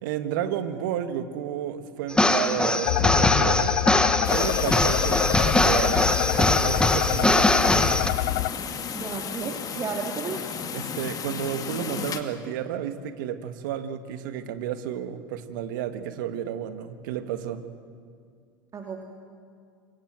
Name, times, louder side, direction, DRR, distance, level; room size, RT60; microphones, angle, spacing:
voice 1, 0.0-3.8 4.3-7.5 10.7-17.6, right 10 dB, 65° right, 10 dB, 1.8 m, -32 dB
sound 1, 2.1-8.1, left 2 dB, 10° left, 1.7 m, -22 dB
sound 2, 2.9-8.5, left 17 dB, 60° left, 0.7 m, -26 dB
sound 3, 4.2-12.2, left 7 dB, 35° left, 2.3 m, -34 dB
voice 2, 8.9-10.5 18.7-19.0, right 5 dB, 30° right, 2 dB, 2.6 m, -33 dB
26.5 x 23.0 x 7.7 m, 2.2 s
hypercardioid pair, 85°, 11 cm